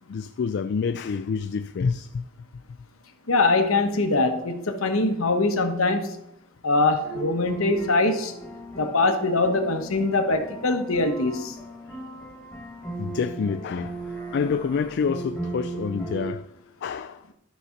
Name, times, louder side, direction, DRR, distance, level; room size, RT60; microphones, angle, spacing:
voice 1, 0.1-2.2 13.0-14.0 14.3-16.4 16.8-17.2, left 5 dB, 55° left, 0.3 m, -27 dB
voice 2, 3.3-6.1 6.6-8.3 8.8-11.5, left 2 dB, 85° left, 1.2 m, -23 dB
sound 1, 7.0-16.3, right 2 dB, 10° left, 1.6 m, -37 dB
12.0 x 4.1 x 5.8 m
head